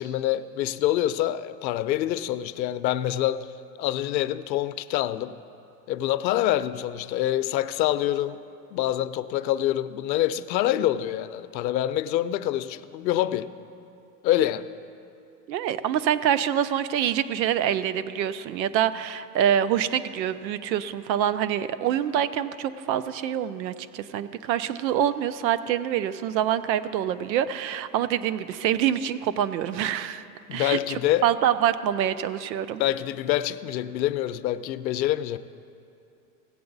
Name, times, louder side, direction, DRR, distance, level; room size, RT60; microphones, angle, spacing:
voice 1, 0.0-3.5 3.8-5.4 5.9-8.4 8.7-13.5 14.2-14.7 30.5-31.3 32.8-35.4, left 13 dB, 85° left, 0.6 m, -26 dB
voice 2, 15.5-30.2 30.5-32.8, right 10 dB, 85° right, 0.7 m, -26 dB
17.0 x 7.9 x 4.0 m
supercardioid pair, 150°, 50 cm